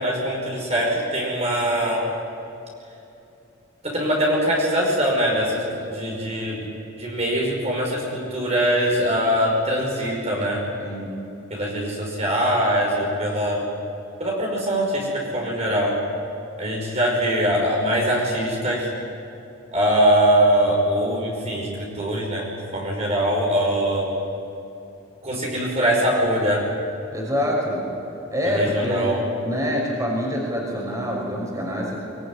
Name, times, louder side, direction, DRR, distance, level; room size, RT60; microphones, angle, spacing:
voice 1, 0.0-2.0 3.8-6.7 7.0-10.6 11.5-13.7 14.2-16.0 16.6-18.9 19.7-24.1 25.2-26.7 28.5-29.2, equal, 35° right, -2 dB, 5.5 m, -22 dB
voice 2, 10.8-11.1 27.1-27.8 28.3-29.1 29.4-32.0, equal, 15° right, -2 dB, 5.6 m, -25 dB
24.0 x 22.0 x 10.0 m, 2.8 s
head